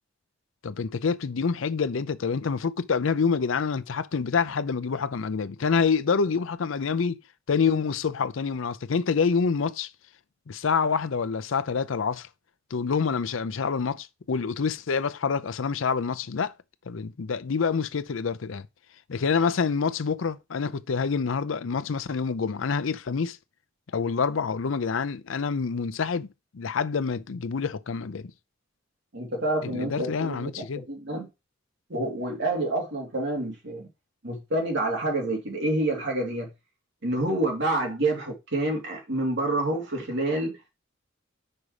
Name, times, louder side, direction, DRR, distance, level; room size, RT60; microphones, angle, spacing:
voice 1, 0.6-7.2 7.5-9.9 10.5-12.3 12.7-16.5 16.9-18.7 19.1-23.4 23.9-26.3 26.5-28.3 29.6-30.9, left 5 dB, 75° left, 0.5 m, -27 dB
voice 2, 29.1-31.3 31.9-33.9 34.2-36.5 37.0-40.6, right 2 dB, 60° right, 2.6 m, -28 dB
5.5 x 5.0 x 4.8 m
head